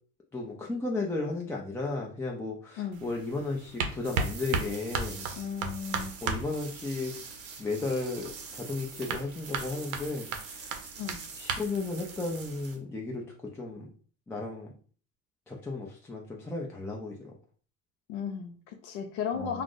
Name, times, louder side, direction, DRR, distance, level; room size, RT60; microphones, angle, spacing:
voice 1, 0.3-5.3 6.2-7.2 7.6-10.7 11.4-13.2 13.5-13.9 14.3-14.7 15.5-17.3 19.3-19.6, left 3 dB, 5° left, -2 dB, 0.3 m, -34 dB
sound 1, 2.9-12.7, right 5 dB, 90° right, 0.6 m, -37 dB
sound 2, 4.0-12.8, right 5 dB, 35° right, 0.7 m, -45 dB
voice 2, 5.4-6.2 11.0-11.2 18.1-19.6, left 7 dB, 70° left, 5 dB, 0.6 m, -35 dB
2.4 x 2.0 x 3.7 m, 0.42 s
supercardioid pair, 95°, 40 cm